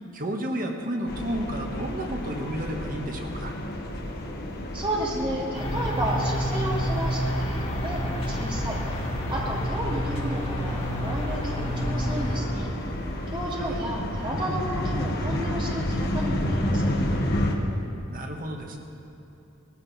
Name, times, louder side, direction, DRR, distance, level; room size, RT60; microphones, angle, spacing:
voice 1, 0.1-3.6 13.6-13.8 18.1-18.8, right 1 dB, 40° right, 2 dB, 1.4 m, -32 dB
sound 1, 1.1-17.6, left 1 dB, 50° left, 1.4 m, -31 dB
voice 2, 4.7-12.7 13.3-16.9, right 1 dB, 25° right, -4 dB, 2.4 m, -32 dB
sound 2, 5.5-12.4, equal, 30° left, 1.7 m, -29 dB
19.0 x 15.0 x 4.2 m, 2.8 s
head